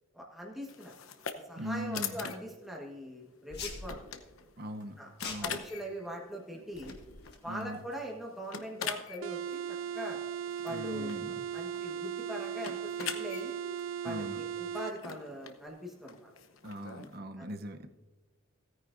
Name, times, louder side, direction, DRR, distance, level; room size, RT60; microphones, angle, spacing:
voice 1, 0.1-1.0 1.5-4.0 5.0-7.0 7.4-10.2 10.6-13.6 14.0-16.3 17.4-17.5, equal, ahead, -2 dB, 1.3 m, -42 dB
sound 1, 0.7-17.2, left 7 dB, 80° left, 0.9 m, -45 dB
voice 2, 1.6-2.2 4.6-5.6 6.5-6.6 7.4-7.8 10.7-11.4 14.0-14.4 16.6-17.9, equal, 50° right, 7 dB, 0.8 m, -40 dB
sound 2, 3.5-3.9 5.2-5.6 6.7-7.4, left 5 dB, 50° left, 1.7 m, -42 dB
sound 3, 9.2-15.0, right 8 dB, 70° right, 0.3 m, -37 dB
16.5 x 9.6 x 2.6 m, 1.2 s
head